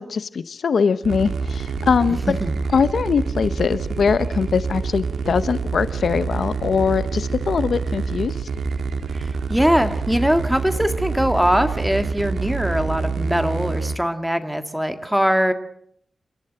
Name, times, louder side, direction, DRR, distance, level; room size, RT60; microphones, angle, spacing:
voice 1, 0.0-2.2 2.7-8.5, left 5 dB, 70° left, 14 dB, 0.8 m, -22 dB
sound 1, 1.0-14.0, right 4 dB, 80° right, 1.7 m, -26 dB
voice 2, 9.1-15.5, equal, 5° right, 8 dB, 1.7 m, -21 dB
29.0 x 13.5 x 7.9 m, 0.68 s
wide cardioid pair, 140°, 0 cm